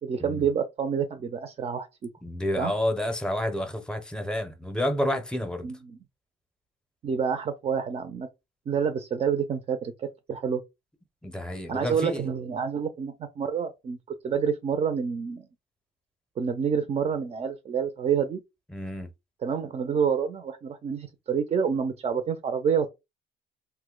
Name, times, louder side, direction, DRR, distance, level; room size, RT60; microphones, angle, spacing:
voice 1, 0.0-2.1 2.6-2.7 5.6-6.0 7.0-8.3 8.7-10.6 11.7-15.5 16.4-18.4 19.4-22.9, right 7 dB, 35° right, 0.5 m, -28 dB
voice 2, 2.2-5.7 11.2-12.3 18.7-19.1, left 1 dB, 5° left, 0.7 m, -29 dB
2.7 x 2.1 x 3.7 m
cardioid pair, 110°, 17 cm